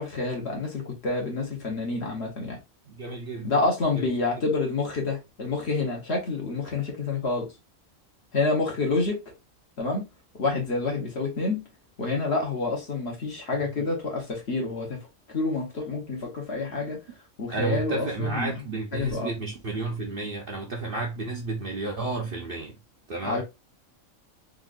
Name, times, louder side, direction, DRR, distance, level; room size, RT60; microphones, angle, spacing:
voice 1, 0.0-2.6 3.4-7.5 8.3-9.2 9.8-10.1 10.3-11.7 12.0-17.0 17.4-18.6 18.9-19.3 23.2-23.4, left 3 dB, 55° left, 1.3 m, -28 dB
voice 2, 2.9-3.6 3.9-4.1 13.6-13.7 17.5-22.7 23.1-23.4, right 3 dB, 50° right, 0.7 m, -32 dB
3.7 x 2.5 x 2.3 m
omnidirectional pair, 1.4 m